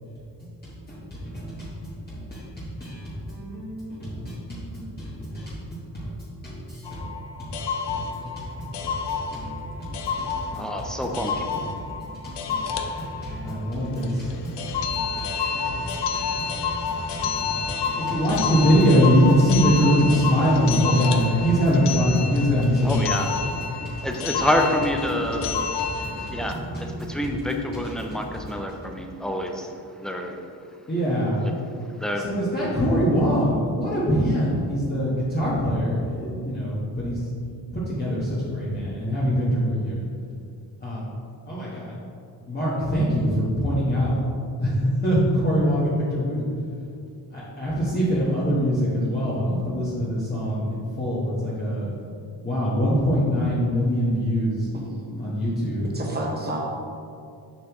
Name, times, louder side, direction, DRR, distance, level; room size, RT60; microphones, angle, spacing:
voice 1, 0.4-6.1 6.4-7.1 7.4-7.6 7.9-11.2 11.5-24.1 25.1-28.2 28.7-28.9 30.9-31.5 32.1-37.3 37.7-40.0 40.8-41.1 41.5-41.9 42.5-44.2 44.6-46.4 47.3-51.9 52.4-54.7 55.2-56.0, equal, 20° left, -9 dB, 1.3 m, -24 dB
sound 1, 6.8-26.5, left 6 dB, 70° left, 0.6 m, -30 dB
voice 2, 10.6-11.5 22.8-23.3 24.0-25.7 26.3-29.7 30.0-30.4 32.0-32.3, left 1 dB, ahead, 2 dB, 0.5 m, -27 dB
voice 3, 54.7-55.3 55.9-56.6, right 1 dB, 25° right, -2 dB, 1.1 m, -31 dB
7.2 x 5.4 x 3.0 m, 2.4 s
cardioid pair, 125°, 43 cm